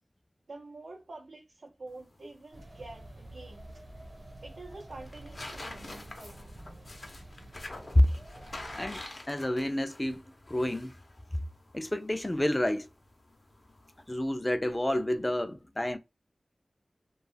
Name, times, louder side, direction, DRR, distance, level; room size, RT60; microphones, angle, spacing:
voice 1, 0.5-3.7 4.4-6.6, right 2 dB, 85° right, 0.5 m, -47 dB
sound 1, 1.9-14.1, left 2 dB, 60° left, 0.6 m, -48 dB
sound 2, 2.5-8.9, right 1 dB, 65° right, 1.0 m, -49 dB
voice 2, 8.7-11.0 11.3-11.4 11.7-12.9 14.1-16.0, left 1 dB, 25° left, 0.4 m, -28 dB
2.3 x 2.0 x 3.2 m
wide cardioid pair, 50°, 0 cm